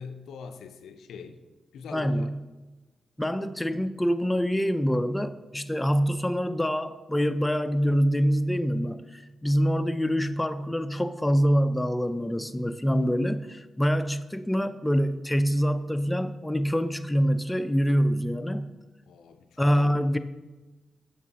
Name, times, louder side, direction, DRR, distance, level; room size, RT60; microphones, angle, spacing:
voice 1, 0.0-1.4 1.7-2.3 19.1-20.1, left 5 dB, 75° left, 8 dB, 0.4 m, -43 dB
voice 2, 1.9-2.4 3.2-18.7 19.6-20.2, equal, 15° left, 10 dB, 0.4 m, -25 dB
7.0 x 6.5 x 2.8 m, 1.2 s
hypercardioid pair, 40°, 0 cm